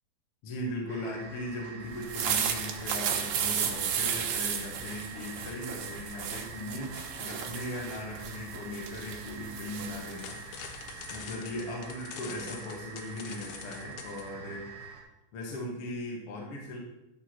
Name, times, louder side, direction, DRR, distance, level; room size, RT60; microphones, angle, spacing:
voice 1, 0.4-14.7 15.3-16.8, left 1 dB, 55° left, -2 dB, 1.8 m, -39 dB
sound 1, 0.9-15.0, right 5 dB, 45° right, 1.7 m, -46 dB
sound 2, 1.9-11.2, right 8 dB, 85° right, 2.8 m, -34 dB
sound 3, 2.8-4.0 4.3-7.7 10.1-14.3, left 8 dB, 75° left, 2.6 m, -47 dB
11.5 x 6.3 x 4.4 m, 0.94 s
omnidirectional pair, 4.5 m